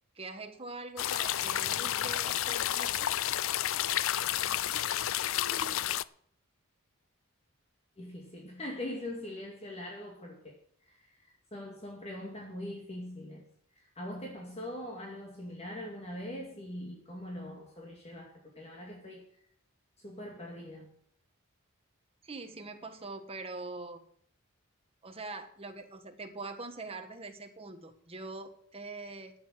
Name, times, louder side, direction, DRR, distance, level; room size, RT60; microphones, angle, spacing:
voice 1, 0.1-3.0 22.2-24.0 25.0-29.3, right 3 dB, 25° right, 1.4 m, -43 dB
sound 1, 1.0-6.0, left 12 dB, 65° left, 0.4 m, -31 dB
voice 2, 5.3-5.7 8.0-10.6 10.8-13.5 13.7-19.2 20.0-20.9, left 1 dB, 30° left, 2.3 m, -42 dB
12.5 x 7.8 x 7.6 m
head